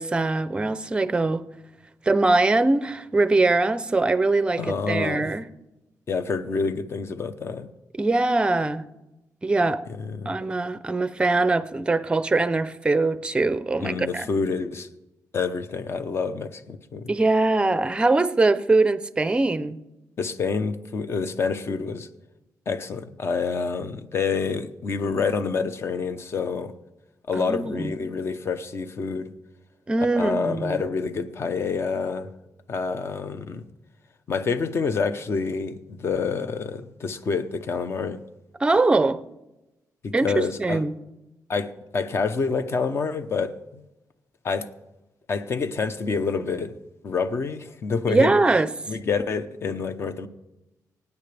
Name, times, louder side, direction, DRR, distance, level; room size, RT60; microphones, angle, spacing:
voice 1, 0.0-1.5 2.1-5.5 8.0-8.8 9.4-9.8 10.3-14.3 17.1-19.8 27.4-27.9 29.9-30.8 38.6-39.2 40.1-40.9 48.1-48.7, right 3 dB, 15° right, 13 dB, 0.5 m, -22 dB
voice 2, 4.6-5.3 6.1-7.7 10.0-10.3 13.8-14.9 15.3-17.1 20.2-22.1 22.7-26.7 27.3-29.3 30.2-32.3 32.7-33.6 34.3-38.2 40.0-40.8 41.5-43.8 44.4-44.7 45.3-46.7 47.0-48.3 48.9-50.3, left 5 dB, 40° left, 11 dB, 0.8 m, -27 dB
24.5 x 9.5 x 3.4 m, 0.99 s
wide cardioid pair, 160°, 6 cm